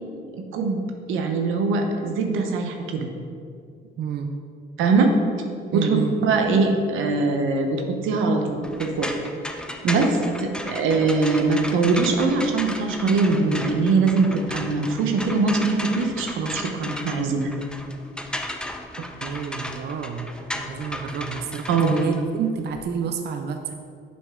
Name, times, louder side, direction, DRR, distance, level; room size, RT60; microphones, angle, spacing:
voice 1, 1.1-3.1 4.8-5.1 5.7-9.1 9.8-17.5 21.7-22.0, right 3 dB, 90° right, 4 dB, 0.7 m, -22 dB
voice 2, 4.0-4.3 5.7-6.2 19.0-23.7, right 7 dB, 55° right, 6 dB, 0.5 m, -29 dB
sound 1, 8.6-22.8, left 1 dB, 5° left, 0.5 m, -34 dB
6.6 x 5.2 x 3.6 m, 2.3 s
cardioid pair, 90°, 20 cm